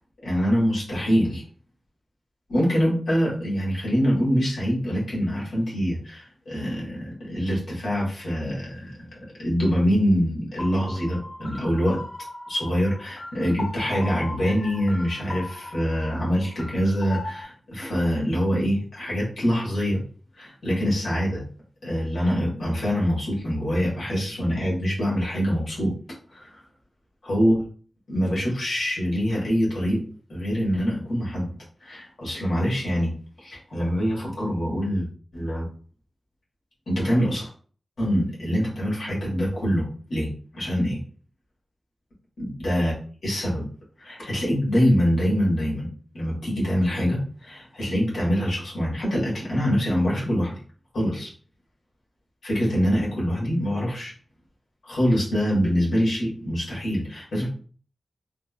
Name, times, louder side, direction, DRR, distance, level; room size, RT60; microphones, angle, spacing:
voice 1, 0.2-1.4 2.5-12.0 12.5-20.0 20.4-21.4 21.8-25.9 26.3-26.6 27.2-27.5 28.1-30.0 30.3-31.5 31.8-33.1 33.4-35.1 35.3-35.7 36.9-37.5 38.0-41.0 42.4-42.9 43.2-43.7 44.0-45.9 46.1-50.6 50.9-51.3 52.4-54.1 54.8-57.5, equal, 80° left, -5 dB, 1.5 m, -24 dB
sound 1, 10.6-17.4, left 2 dB, 50° left, 1.2 m, -38 dB
3.3 x 2.0 x 2.3 m, 0.42 s
wide cardioid pair, 65°, 0 cm